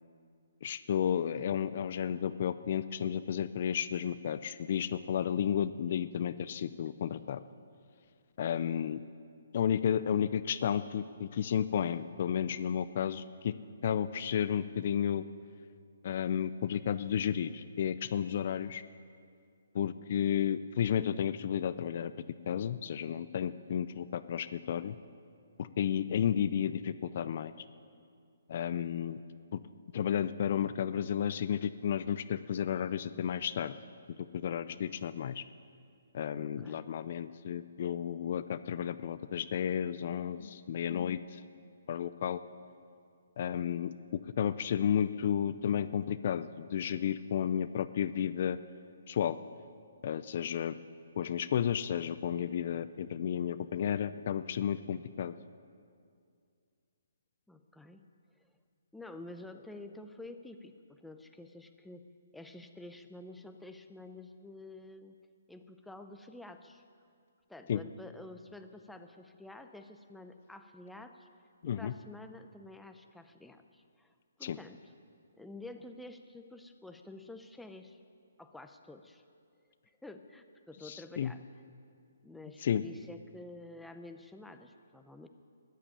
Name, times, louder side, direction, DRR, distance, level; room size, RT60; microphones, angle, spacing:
voice 1, 0.6-7.4 8.4-9.0 9.5-13.5 13.8-15.2 16.0-18.8 19.7-22.1 22.5-25.0 25.6-27.5 28.5-29.2 29.5-29.6 29.9-33.7 34.3-35.4 36.1-41.4 41.9-42.4 43.4-48.6 49.1-49.4 50.0-50.8 51.2-55.3 67.7-67.8 71.6-71.9 74.4-74.6 80.8-81.3 82.6-82.8, left 9 dB, 50° left, 13 dB, 0.5 m, -32 dB
voice 2, 36.3-36.8 54.8-55.0 57.5-58.0 58.4-58.5 58.9-62.1 62.3-65.2 65.5-66.8 67.5-71.3 71.6-74.1 74.4-74.8 75.4-78.0 78.4-79.2 80.0-81.4 82.2-85.3, left 2 dB, 5° left, 6 dB, 0.7 m, -49 dB
13.5 x 10.0 x 8.5 m, 2.3 s
hypercardioid pair, 145°, 0 cm